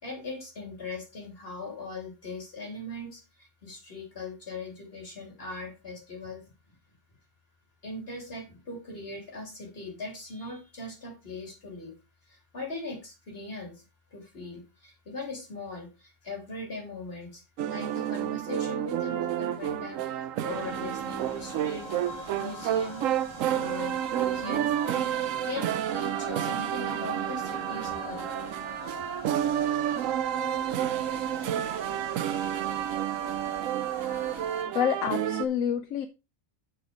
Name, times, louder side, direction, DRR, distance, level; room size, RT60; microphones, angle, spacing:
voice 1, 0.0-6.5 7.8-11.9 12.2-13.8 14.1-21.8 22.4-23.0 23.5-28.3, left 2 dB, 45° left, 1 dB, 3.3 m, -40 dB
sound 1, 17.6-35.4, right 11 dB, 75° right, 1.0 m, -30 dB
sound 2, 20.5-34.6, right 1 dB, 20° right, 1.7 m, -41 dB
voice 2, 34.7-36.1, left 9 dB, 80° left, 11 dB, 1.0 m, -27 dB
6.9 x 6.3 x 4.9 m, 0.29 s
omnidirectional pair, 1.4 m